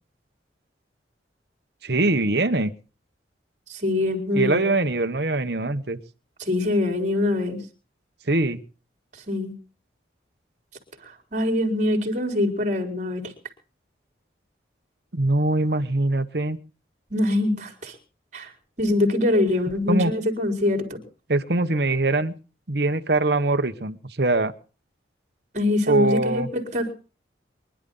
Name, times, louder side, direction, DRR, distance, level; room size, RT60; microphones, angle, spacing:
voice 1, 1.8-2.7 4.3-6.0 8.3-8.6 15.1-16.6 19.9-20.1 21.3-22.3 22.7-24.5 25.9-26.5, right 2 dB, 60° right, 9 dB, 1.2 m, -22 dB
voice 2, 3.7-4.7 6.4-7.6 9.1-9.5 11.0-13.3 17.1-18.0 18.3-18.5 18.8-21.0 25.5-26.9, left 2 dB, 40° right, 3 dB, 4.1 m, -24 dB
24.0 x 11.5 x 3.9 m, 0.36 s
head